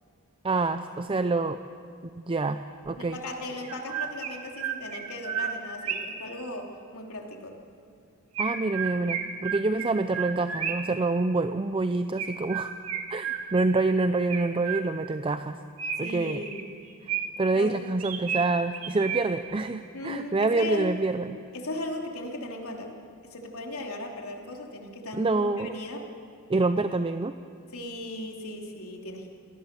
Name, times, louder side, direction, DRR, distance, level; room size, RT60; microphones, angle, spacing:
voice 1, 0.4-1.6 2.3-2.6 2.9-3.2 8.4-12.7 13.1-15.6 16.0-16.4 17.0-21.4 25.2-25.8 26.5-27.4, right 3 dB, 25° right, 10 dB, 0.5 m, -26 dB
voice 2, 3.0-7.6 16.0-16.8 17.5-17.7 19.9-20.9 21.5-22.9 23.2-26.1 27.7-29.3, left 1 dB, 75° left, 1 dB, 3.2 m, -37 dB
Chirp tweet, 3.6-6.3 8.3-11.0 12.2-13.8 14.3-15.2 15.8-17.5 18.0-19.5, right 7 dB, 80° right, 2.3 m, -33 dB
27.0 x 19.5 x 6.9 m, 2.5 s
head